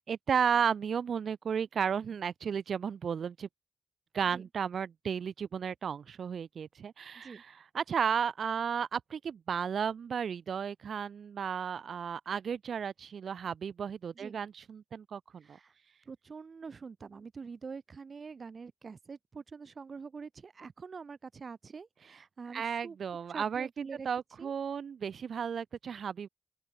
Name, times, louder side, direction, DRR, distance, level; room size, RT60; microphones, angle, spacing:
voice 1, 0.0-3.5 4.1-15.6 22.5-26.3, right 7 dB, 65° right, 0.5 m, -34 dB
voice 2, 15.4-15.7 16.1-23.0 23.3-24.1 24.4-24.5, right 5 dB, 50° right, 1.9 m, -45 dB
open air
cardioid pair, 55°, 0 cm